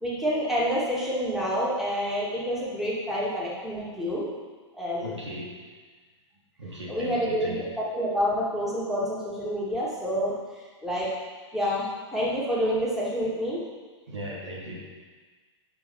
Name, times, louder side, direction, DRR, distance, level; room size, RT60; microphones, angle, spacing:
voice 1, 0.0-4.3 4.8-5.1 6.9-10.3 10.8-11.1 11.5-11.9 12.1-13.6, equal, ahead, -7 dB, 2.8 m, -28 dB
voice 2, 5.0-5.5 6.6-7.6 14.1-14.8, equal, 75° right, -5 dB, 2.9 m, -37 dB
9.0 x 6.2 x 5.7 m, 1.4 s
figure-of-eight pair, 105°, 15 cm